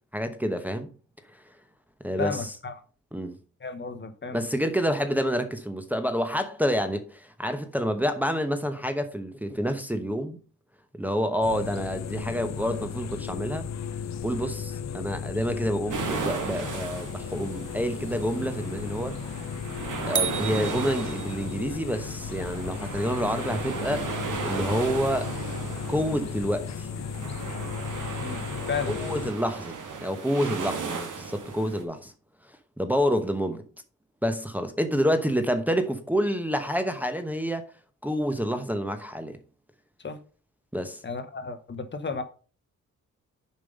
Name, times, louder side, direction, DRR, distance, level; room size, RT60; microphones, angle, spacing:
voice 1, 0.1-0.9 2.0-2.5 3.1-3.4 4.3-10.4 10.9-13.7 14.2-19.2 20.1-24.0 24.4-25.3 25.9-26.9 28.9-29.7 30.0-32.1 32.8-33.6 34.2-37.7 38.0-39.4 40.7-41.0, equal, 5° right, 0.9 m, -28 dB
voice 2, 2.2-2.8 3.6-4.4 28.2-28.4 28.7-29.0 40.0-40.2 41.0-42.2, left 5 dB, 35° left, 1.1 m, -33 dB
sound 1, 11.4-29.3, left 7 dB, 60° left, 0.6 m, -35 dB
sound 2, 15.9-31.8, right 5 dB, 75° right, 2.2 m, -36 dB
sound 3, 20.2-21.7, right 7 dB, 40° right, 0.8 m, -31 dB
6.9 x 5.4 x 5.3 m
cardioid pair, 100°, 32 cm